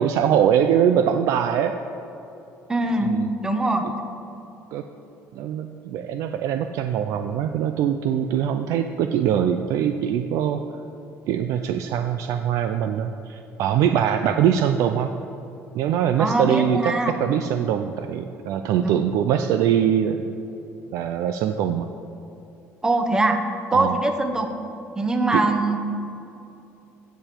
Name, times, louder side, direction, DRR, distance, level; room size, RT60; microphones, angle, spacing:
voice 1, 0.0-1.7 3.0-3.3 4.7-4.8 5.3-10.6 11.3-15.1 15.7-16.9 17.2-20.3 20.9-21.9 23.7-24.0 25.3-25.4, right 9 dB, 70° right, 7 dB, 0.4 m, -22 dB
voice 2, 2.7-3.9 16.2-17.1 18.8-18.9 22.8-23.4 23.7-24.5 25.0-25.8, right 2 dB, 10° right, 6 dB, 0.9 m, -22 dB
16.5 x 6.9 x 4.5 m, 2.8 s
cardioid pair, 155°, 6 cm